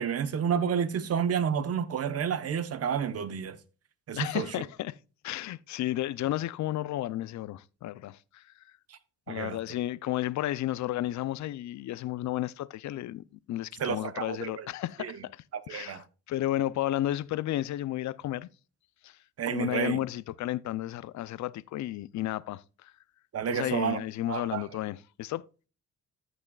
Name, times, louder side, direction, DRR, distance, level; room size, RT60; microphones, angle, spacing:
voice 1, 0.0-3.6 4.1-4.5 9.3-9.6 13.8-14.7 15.0-15.2 15.5-16.0 19.4-20.0 23.3-24.0 24.3-24.6, right 7 dB, 55° right, 1.0 m, -30 dB
voice 2, 4.1-5.0 5.2-8.4 9.3-18.5 19.0-19.2 19.5-22.9 23.5-25.4, left 14 dB, 70° left, 0.6 m, -33 dB
14.5 x 6.2 x 2.4 m
cardioid pair, 90°, 30 cm